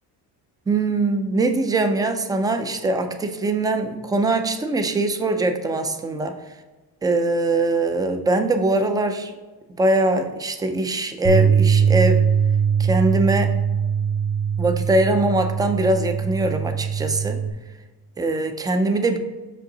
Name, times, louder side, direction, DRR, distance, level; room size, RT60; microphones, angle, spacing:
voice 1, 0.7-6.3 7.0-9.4 9.7-12.2 12.8-13.5 14.6-17.4 18.2-19.2, right 2 dB, 10° right, 7 dB, 0.4 m, -22 dB
Bass guitar, 11.2-17.5, right 7 dB, 35° right, 1.1 m, -21 dB
6.2 x 5.4 x 3.9 m, 1.2 s
cardioid pair, 165°, 40 cm